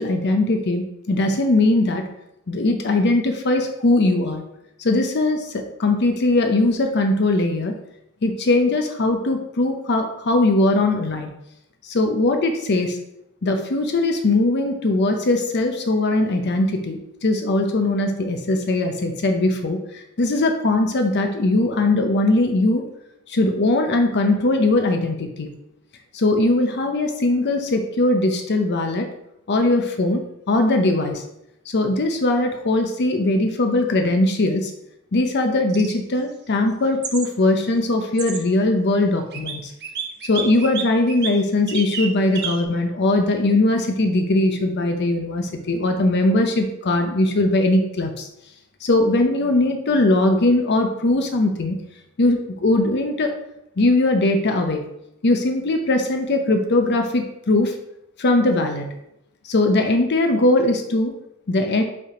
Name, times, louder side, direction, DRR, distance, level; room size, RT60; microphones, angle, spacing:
voice 1, 0.0-2.1 2.5-4.4 4.8-7.7 8.2-11.3 11.8-13.0 13.4-22.8 23.3-25.5 26.1-29.1 29.5-31.2 31.7-34.7 35.1-39.7 40.2-48.3 48.8-51.8 52.2-53.3 53.8-54.9 55.2-57.8 58.2-58.9 59.4-61.1 61.5-61.8, left 2 dB, 50° left, 5 dB, 0.6 m, -20 dB
sound 1, 35.7-35.9 37.0-37.3 38.2-38.4 39.3-39.5 39.8-41.3 41.7-42.1 42.3-42.6, right 6 dB, 50° right, 0.8 m, -29 dB
5.4 x 3.5 x 4.9 m, 0.81 s
head